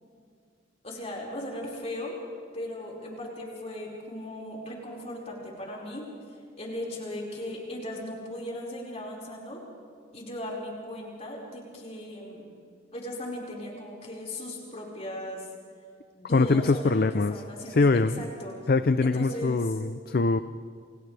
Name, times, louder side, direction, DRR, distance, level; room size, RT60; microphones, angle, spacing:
voice 1, 0.8-2.2 2.5-6.1 6.5-9.6 10.1-12.5 12.9-15.5 16.1-18.7 19.0-19.7, left 1 dB, 35° left, -3 dB, 5.2 m, -37 dB
voice 2, 16.3-17.3 17.8-18.2 18.7-20.4, left 3 dB, 50° left, 11 dB, 0.5 m, -23 dB
30.0 x 28.0 x 3.4 m, 2.2 s
head